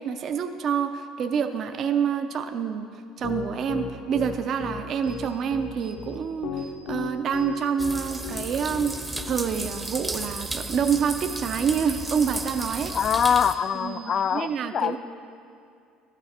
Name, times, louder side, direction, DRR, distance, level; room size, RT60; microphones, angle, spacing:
voice 1, 0.0-2.9 3.2-8.9 9.2-12.9 13.8-15.0, right 7 dB, 45° right, 7 dB, 0.5 m, -27 dB
Piano, 3.2-9.7, left 7 dB, 70° left, 0.9 m, -34 dB
sound 1, 5.0-5.2 5.8-6.0 6.6-6.7 7.3-7.5 8.1-8.3 8.9-9.0 9.5-14.5, right 9 dB, 80° right, 2.2 m, -48 dB
sound 2, 7.8-13.6, right 2 dB, 10° right, 0.7 m, -34 dB
voice 2, 12.9-15.0, left 8 dB, 40° left, 15 dB, 0.3 m, -24 dB
12.5 x 9.0 x 4.2 m, 2.4 s
cardioid pair, 120°, 0 cm